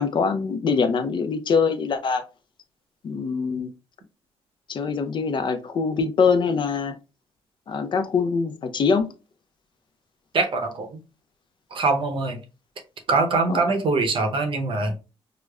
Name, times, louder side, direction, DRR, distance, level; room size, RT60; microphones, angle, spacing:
voice 1, 0.0-2.2 3.0-3.7 4.7-7.0 7.7-9.0 13.5-13.6, left 5 dB, 50° left, 0.4 m, -23 dB
voice 2, 10.3-11.0 11.7-12.4 13.1-15.0, right 3 dB, 55° right, 0.7 m, -23 dB
4.8 x 2.1 x 2.3 m
cardioid pair, 110°, 11 cm